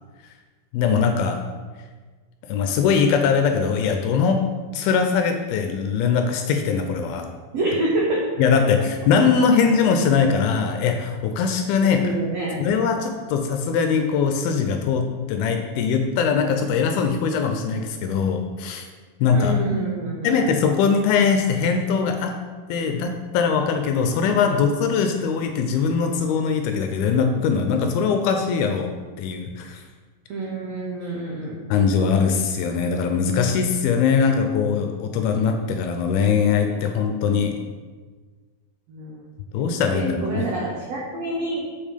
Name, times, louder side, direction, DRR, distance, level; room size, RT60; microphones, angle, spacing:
voice 1, 0.7-1.4 2.5-4.4 4.7-7.3 8.4-12.1 12.6-18.9 19.2-19.5 20.2-22.4 22.7-29.8 31.7-37.6 39.5-40.5, left 6 dB, 80° left, 5 dB, 2.3 m, -21 dB
voice 2, 7.5-8.3 11.8-12.6 19.3-20.4 24.2-24.5 30.3-31.6 38.9-39.2 39.9-41.6, right 2 dB, 85° right, -4 dB, 1.4 m, -27 dB
7.2 x 5.4 x 5.0 m, 1.4 s
omnidirectional pair, 4.7 m